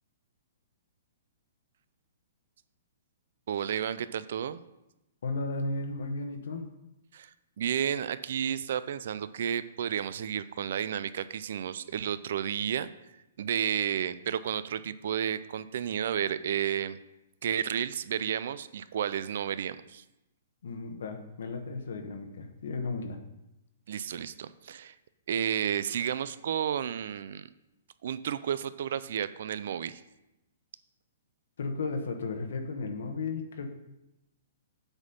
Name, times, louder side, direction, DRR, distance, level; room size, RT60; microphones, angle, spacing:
voice 1, 3.5-4.6 7.1-7.3 7.6-12.9 13.4-17.0 17.4-20.0 23.9-24.9 25.3-27.5 28.0-30.0, right 9 dB, 65° right, 15 dB, 0.4 m, -32 dB
voice 2, 5.2-6.7 20.6-23.2 31.6-33.7, left 3 dB, 75° left, 5 dB, 1.1 m, -34 dB
7.9 x 4.2 x 5.5 m, 0.92 s
hypercardioid pair, 145°, 0 cm